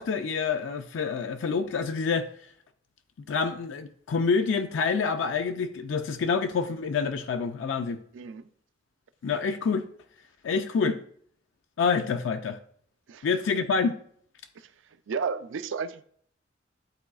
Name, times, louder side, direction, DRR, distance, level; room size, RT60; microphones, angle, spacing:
voice 1, 0.0-2.3 3.3-8.0 9.2-9.9 10.4-11.0 11.8-12.6 13.2-13.9, left 5 dB, 70° left, 0.4 m, -27 dB
voice 2, 15.1-16.0, right 5 dB, 75° right, 0.4 m, -32 dB
11.0 x 3.9 x 2.3 m
head